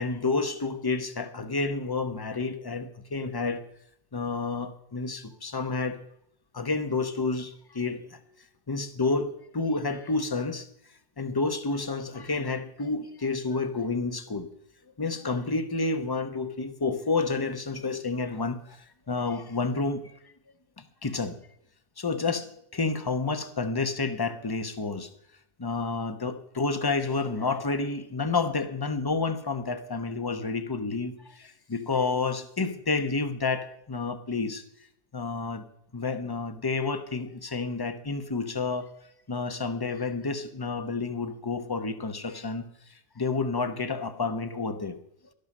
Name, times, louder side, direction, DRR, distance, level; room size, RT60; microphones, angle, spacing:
voice 1, 0.0-3.6 4.1-6.0 6.5-8.2 8.7-10.7 11.2-14.5 15.0-20.1 20.8-21.4 22.0-25.1 25.6-34.6 35.1-35.6 35.9-38.9 39.3-42.7 43.2-45.0, left 3 dB, 25° left, 9 dB, 0.8 m, -30 dB
12.5 x 12.0 x 5.3 m, 0.75 s
omnidirectional pair, 1.1 m